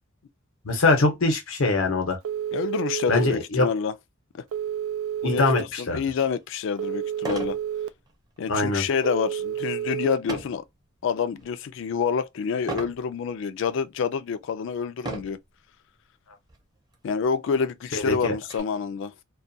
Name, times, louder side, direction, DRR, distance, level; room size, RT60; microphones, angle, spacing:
voice 1, 0.6-2.2 3.1-3.7 5.2-6.0 8.5-8.8 17.9-18.3, left 3 dB, 85° left, 0.8 m, -23 dB
Telephone, 2.2-3.3 4.5-5.6 6.8-7.9 9.0-10.1, right 10 dB, 85° right, 0.3 m, -30 dB
voice 2, 2.5-3.9 4.3-4.4 5.2-5.4 5.8-7.6 8.4-10.6 11.0-15.4 17.0-19.1, left 6 dB, 65° left, 0.3 m, -27 dB
sound 1, 6.2-6.3 7.2-7.6 8.1-8.4 10.3-10.6 11.3-11.7 12.7-13.0 13.8-13.9 15.0-15.5 16.5-16.6 16.9-17.0 17.5-18.6, right 2 dB, 20° right, 0.6 m, -35 dB
2.3 x 2.2 x 2.6 m
head